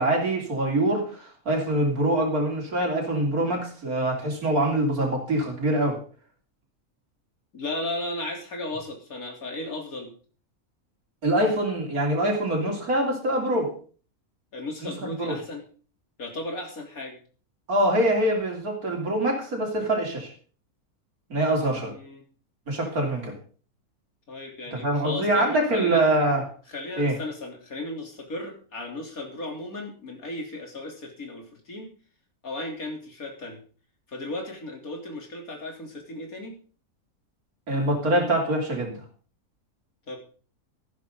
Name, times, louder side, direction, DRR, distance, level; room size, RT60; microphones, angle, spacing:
voice 1, 0.0-6.0 11.2-13.7 14.8-15.3 17.7-20.3 21.3-21.9 22.7-23.3 24.7-26.4 27.0-27.2 37.7-39.0, right 1 dB, 80° right, 1 dB, 3.6 m, -24 dB
voice 2, 7.5-10.1 14.5-15.6 16.2-17.2 21.9-22.2 24.3-26.0 26.7-31.9 32.4-33.6 34.1-36.5 40.1-40.2, left 2 dB, 75° left, 1 dB, 3.8 m, -35 dB
14.0 x 12.0 x 3.9 m, 0.40 s
omnidirectional pair, 1.5 m